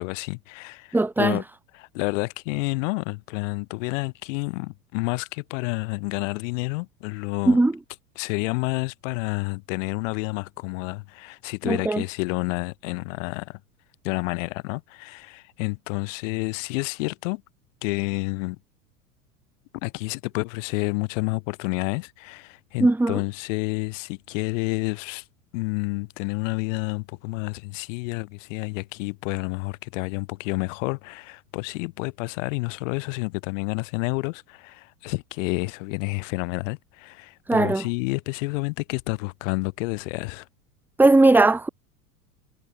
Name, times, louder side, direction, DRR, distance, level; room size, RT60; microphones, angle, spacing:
voice 1, 0.0-1.4 1.7-7.6 8.2-13.6 14.0-17.4 17.8-18.6 19.8-25.2 25.5-40.5, left 26 dB, 55° left, 6.0 m, -29 dB
voice 2, 0.9-1.4 7.5-7.7 11.7-12.0 22.8-23.1 37.5-37.8 41.0-41.7, right 2 dB, 5° right, 1.2 m, -18 dB
figure-of-eight pair, 85°, 45 cm